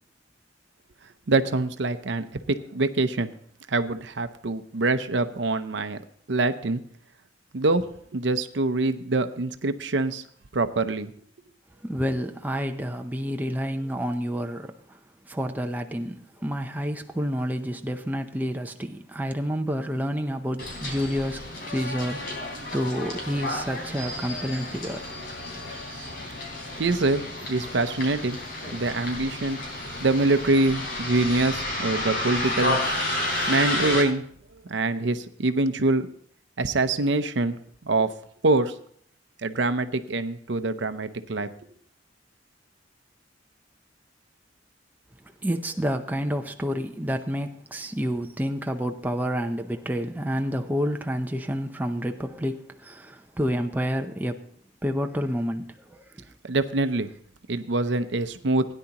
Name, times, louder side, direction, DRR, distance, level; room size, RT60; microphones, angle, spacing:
voice 1, 1.3-3.3 3.7-6.0 6.3-6.8 7.5-7.8 8.1-10.2 10.5-11.1 26.8-28.4 28.7-29.6 30.0-32.8 33.5-34.2 34.7-36.1 36.6-37.6 37.8-38.1 38.4-38.7 39.4-41.5 56.4-57.1 57.5-58.6, right 2 dB, 65° right, 0.7 m, -24 dB
voice 2, 11.8-25.1 45.4-54.5 54.8-56.3, equal, 10° right, 0.6 m, -29 dB
Bus, 20.6-34.0, left 1 dB, 55° left, 3.5 m, -31 dB
17.0 x 9.9 x 2.9 m
head